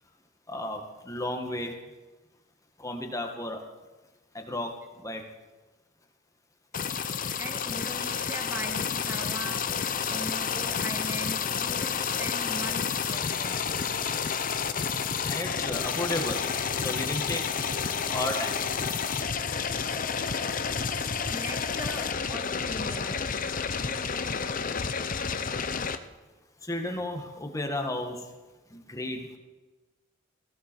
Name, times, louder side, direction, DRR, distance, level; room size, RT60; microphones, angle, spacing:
voice 1, 0.5-1.8 2.8-3.6 4.3-5.2 15.2-17.5 18.1-18.6 26.6-28.3 28.7-29.4, left 1 dB, 15° left, 3 dB, 1.6 m, -33 dB
sound 1, 6.7-26.0, left 6 dB, 45° left, 0.7 m, -30 dB
voice 2, 7.0-9.7 10.1-13.7 20.0-20.1 21.3-23.2, right 1 dB, 10° right, 3 dB, 1.9 m, -40 dB
17.5 x 16.0 x 4.6 m, 1.2 s
head